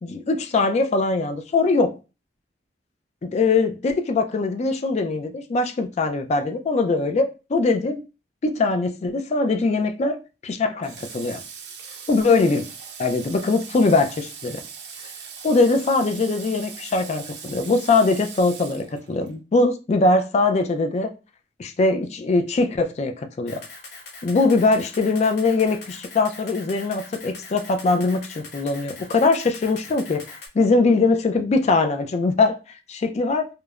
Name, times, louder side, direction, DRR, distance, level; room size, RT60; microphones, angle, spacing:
voice 1, 0.0-1.9 3.2-8.0 8.4-10.2 10.4-11.4 12.1-12.6 13.0-14.6 15.4-21.1 21.6-23.6 24.2-30.2 30.5-32.6 32.9-33.5, left 3 dB, 40° left, 0.3 m, -21 dB
Water / Water tap faucet, 10.8-19.3, right 6 dB, 70° right, 0.5 m, -40 dB
Camera, 23.5-30.5, left 3 dB, 60° left, 0.8 m, -41 dB
2.9 x 2.0 x 2.3 m
head